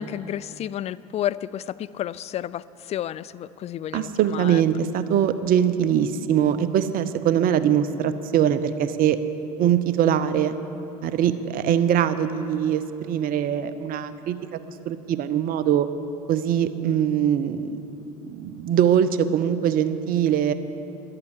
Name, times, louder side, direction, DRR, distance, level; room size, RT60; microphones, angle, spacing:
voice 1, 0.0-4.6, left 11 dB, 35° left, 18 dB, 0.4 m, -31 dB
voice 2, 3.9-9.2 9.6-10.6 11.0-14.4 14.9-15.9 16.3-17.7 18.3-20.5, right 9 dB, 50° right, 12 dB, 0.7 m, -22 dB
12.0 x 8.6 x 8.1 m, 2.9 s
hypercardioid pair, 75°, 19 cm